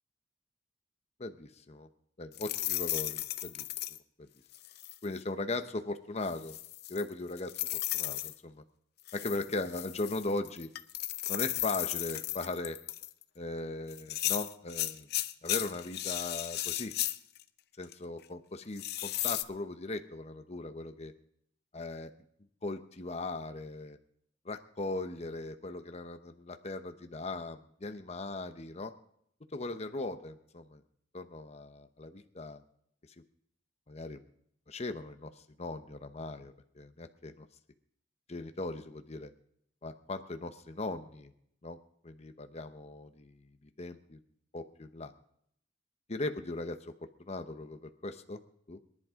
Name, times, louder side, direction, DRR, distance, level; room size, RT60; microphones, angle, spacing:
voice 1, 1.2-1.9 2.2-3.7 4.2-4.3 5.0-6.6 6.9-8.6 9.1-10.7 11.3-12.8 13.4-15.1 15.4-16.9 17.8-21.1 21.7-22.1 22.6-24.0 24.4-28.9 29.5-30.8 31.1-32.6 33.9-34.2 34.7-35.3 35.6-37.5 38.3-39.3 39.8-41.3 41.6-41.8 42.0-43.4 43.6-44.2 44.5-45.1 46.1-46.8 47.2-48.4 48.7-48.8, left 2 dB, 35° left, 8 dB, 0.9 m, -38 dB
sound 1, 2.3-4.0 4.5-5.1 6.3-8.3 9.1-13.2 13.9-17.4 17.8-17.9 18.8-19.4, left 14 dB, 60° left, 0.6 m, -35 dB
24.0 x 11.0 x 3.7 m, 0.70 s
head